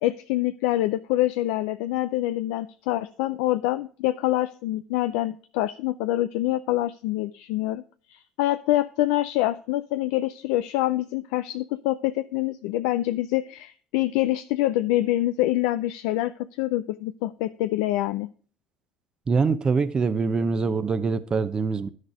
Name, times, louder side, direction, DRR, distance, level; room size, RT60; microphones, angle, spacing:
voice 1, 0.0-7.8 8.1-18.3, left 15 dB, 85° left, 0.4 m, -26 dB
voice 2, 19.3-21.9, right 4 dB, 35° right, 0.8 m, -24 dB
11.0 x 6.5 x 4.9 m
supercardioid pair, 80°, 2 cm